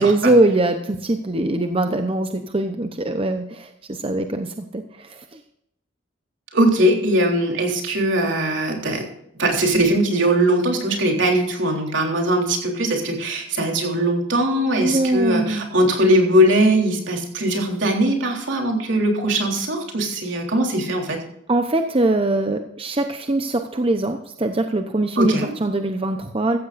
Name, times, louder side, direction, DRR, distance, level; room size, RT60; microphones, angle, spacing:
voice 1, 0.0-5.4 14.8-15.7 21.5-26.6, right 2 dB, 30° right, 6 dB, 0.8 m, -22 dB
voice 2, 6.5-9.0 9.4-21.2 25.2-25.5, right 1 dB, 70° right, 1 dB, 3.6 m, -20 dB
15.5 x 15.0 x 2.6 m, 0.77 s
head